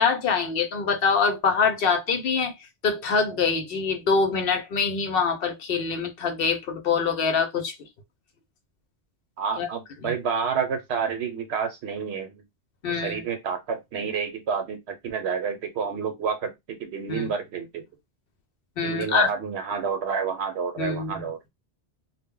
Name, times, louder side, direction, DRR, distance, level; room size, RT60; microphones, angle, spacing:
voice 1, 0.0-2.5 2.8-7.7 9.6-9.7 10.0-10.1 12.8-13.2 17.1-17.3 18.8-19.3 20.8-21.2, left 5 dB, 60° left, 0.8 m, -24 dB
voice 2, 9.4-12.3 12.9-17.8 18.8-21.5, right 6 dB, 75° right, 0.8 m, -29 dB
2.1 x 2.1 x 3.6 m
omnidirectional pair, 1.1 m